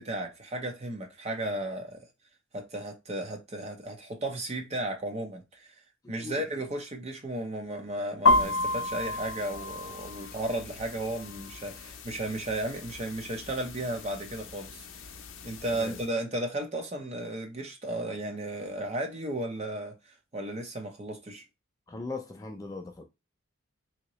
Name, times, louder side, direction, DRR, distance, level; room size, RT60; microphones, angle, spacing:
voice 1, 0.0-2.1 2.5-5.7 6.1-14.9 15.4-21.4, right 1 dB, 30° right, 0.7 m, -34 dB
voice 2, 6.0-6.5 15.7-16.0 21.9-23.0, left 3 dB, 15° left, 0.3 m, -39 dB
sound 1, 8.3-16.1, left 2 dB, 75° left, 0.5 m, -32 dB
3.6 x 2.8 x 2.9 m
head